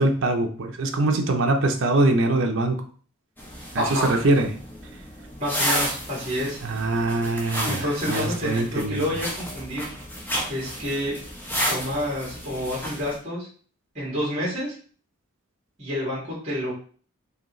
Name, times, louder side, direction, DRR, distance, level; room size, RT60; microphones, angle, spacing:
voice 1, 0.0-2.8 3.7-4.5 6.6-9.1, right 2 dB, 60° right, 3 dB, 0.6 m, -23 dB
sound 1, 3.4-13.2, equal, 10° left, 0.7 m, -32 dB
voice 2, 3.8-4.2 5.4-6.6 7.7-9.9 10.5-11.2 11.7-13.5 13.9-14.7 15.8-16.7, equal, 30° right, -7 dB, 1.9 m, -28 dB
4.9 x 2.8 x 3.1 m, 0.43 s
head